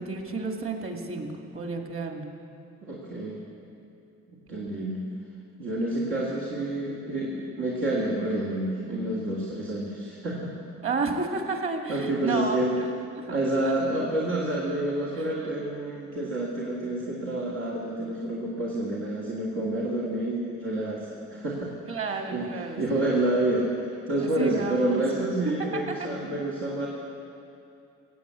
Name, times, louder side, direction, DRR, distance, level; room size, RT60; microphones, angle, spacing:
voice 1, 0.0-2.3 10.8-12.8 15.1-15.3 21.9-23.1 24.2-25.0 25.7-26.1, right 4 dB, 45° right, 3 dB, 2.2 m, -31 dB
voice 2, 2.8-3.4 4.5-5.0 5.6-10.5 11.9-12.7 13.3-21.7 22.0-26.9, right 1 dB, 85° right, -5 dB, 2.2 m, -28 dB
16.5 x 8.4 x 8.2 m, 2.7 s
cardioid pair, 90°, 30 cm